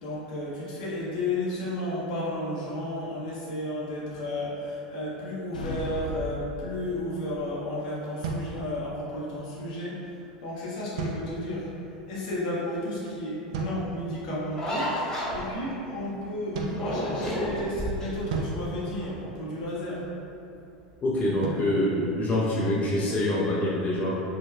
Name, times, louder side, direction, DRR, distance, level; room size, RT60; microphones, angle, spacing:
voice 1, 0.0-9.9 10.4-11.7 12.1-14.9 15.3-20.0, left 1 dB, 65° left, -8 dB, 0.8 m, -32 dB
Orchestra Stab, 5.5-7.2, equal, 90° left, 0.4 m, -36 dB
sound 1, 8.2-9.3 11.0-11.8 13.5-14.2 16.5-17.6 18.3-19.8 21.4-22.9, right 3 dB, 65° right, 0.4 m, -36 dB
sound 2, 14.5-15.8 16.7-18.2 18.6-19.2, equal, 15° left, 1.1 m, -31 dB
voice 2, 21.0-24.2, left 1 dB, 35° left, -6 dB, 0.6 m, -25 dB
4.8 x 2.2 x 2.2 m, 2.8 s
hypercardioid pair, 85°, 4 cm